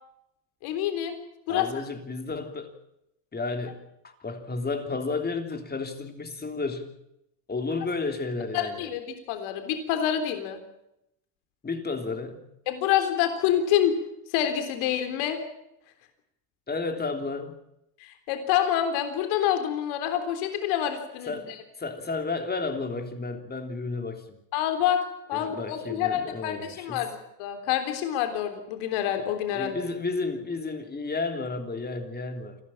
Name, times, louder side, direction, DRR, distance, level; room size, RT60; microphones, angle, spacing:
voice 1, 0.6-1.2 1.5-1.8 8.5-9.0 9.3-10.6 12.7-13.9 14.3-15.4 18.0-21.6 24.5-25.0 25.3-29.7, left 10 dB, 75° left, 7 dB, 3.7 m, -27 dB
voice 2, 1.5-2.7 3.3-7.0 7.5-8.9 11.6-12.4 16.7-17.6 21.3-24.4 25.3-27.1 29.5-32.6, left 3 dB, 20° left, 6 dB, 3.3 m, -32 dB
29.0 x 13.0 x 8.9 m, 0.83 s
cardioid pair, 125°, 49 cm